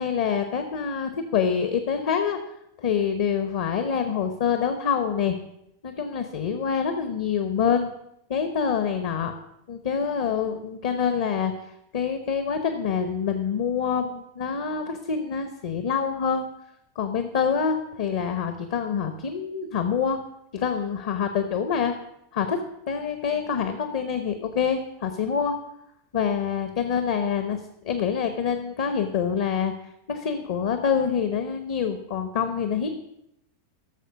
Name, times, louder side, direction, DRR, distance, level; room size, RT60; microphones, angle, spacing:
voice 1, 0.0-2.4 2.8-5.4 5.8-7.9 8.3-9.3 9.7-11.5 11.9-16.4 17.0-20.2 20.5-22.0 22.3-22.6 22.9-25.5 26.1-29.7 30.1-32.9, left 7 dB, 55° left, 8 dB, 0.9 m, -26 dB
14.0 x 6.7 x 5.2 m, 0.80 s
figure-of-eight pair, 90°, 0 cm